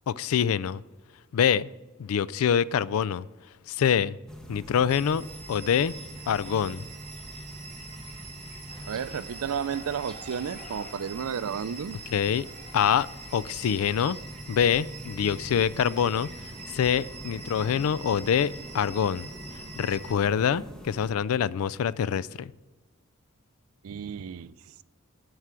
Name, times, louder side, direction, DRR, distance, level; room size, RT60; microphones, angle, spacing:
voice 1, 0.1-0.8 1.3-1.7 2.0-3.3 3.7-4.2 4.5-5.9 6.3-6.8 12.1-12.5 12.7-13.1 13.3-14.2 14.5-16.3 16.7-19.3 19.8-22.5, left 8 dB, 80° left, 0.3 m, -25 dB
sound 1, 4.3-21.1, equal, 5° left, 1.1 m, -45 dB
sound 2, 4.9-20.2, right 3 dB, 30° right, 2.3 m, -45 dB
sound 3, 8.7-13.8, left 1 dB, 25° left, 1.9 m, -51 dB
voice 2, 8.9-12.0 23.8-24.5, right 7 dB, 80° right, 0.4 m, -32 dB
12.5 x 4.8 x 7.5 m
head